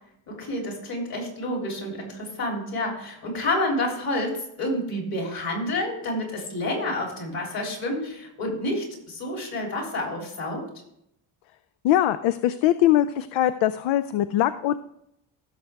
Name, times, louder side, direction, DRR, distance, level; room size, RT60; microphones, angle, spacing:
voice 1, 0.3-10.7, left 1 dB, 45° left, 0 dB, 3.5 m, -29 dB
voice 2, 11.8-14.8, left 12 dB, 70° left, 13 dB, 0.5 m, -22 dB
15.5 x 6.6 x 3.5 m, 0.77 s
cardioid pair, 150°, 49 cm